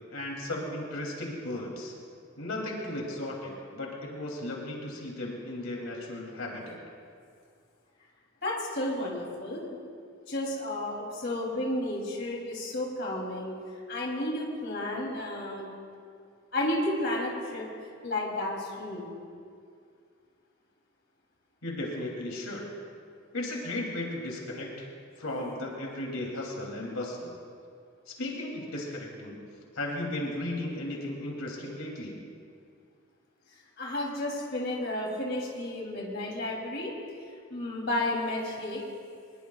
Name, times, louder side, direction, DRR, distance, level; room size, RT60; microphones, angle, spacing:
voice 1, 0.1-1.9 2.4-6.8 21.6-22.6 23.3-24.9 25.2-27.3 28.1-29.4 29.7-32.2, left 1 dB, 85° left, -1 dB, 2.8 m, -35 dB
voice 2, 8.4-9.6 10.3-13.5 13.9-15.6 16.5-17.6 18.0-19.1 33.8-36.9 37.5-38.8, left 1 dB, 50° left, -3 dB, 3.0 m, -32 dB
22.5 x 21.0 x 2.4 m, 2.3 s
head